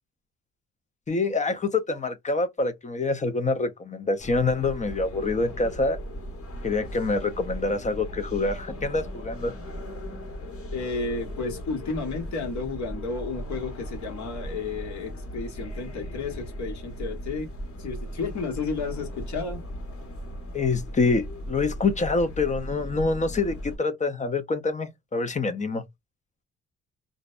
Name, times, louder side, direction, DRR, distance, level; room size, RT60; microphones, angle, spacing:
voice 1, 1.1-6.0 6.6-9.5 20.5-25.8, left 3 dB, 25° left, 0.5 m, -26 dB
sound 1, 4.2-23.8, equal, 50° left, 1.3 m, -37 dB
voice 2, 10.7-17.5 17.8-19.6, left 4 dB, 70° left, 1.2 m, -32 dB
2.5 x 2.1 x 2.3 m
cardioid pair, 90°, 30 cm